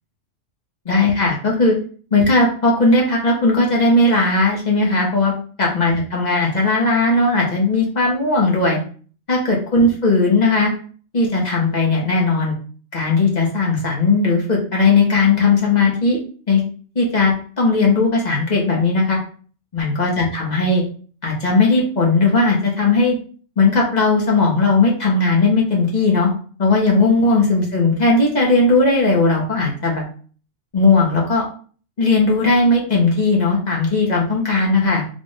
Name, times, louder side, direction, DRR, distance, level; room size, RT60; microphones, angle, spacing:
voice 1, 0.8-1.7 2.1-5.3 5.6-8.8 9.3-10.7 11.1-12.5 12.9-16.2 16.5-16.6 16.9-19.2 19.7-20.8 21.2-23.1 23.6-26.3 26.6-30.0 30.7-31.4 32.0-35.0, left 3 dB, 35° left, -3 dB, 1.1 m, -17 dB
4.2 x 2.5 x 3.3 m, 0.42 s
omnidirectional pair, 1.3 m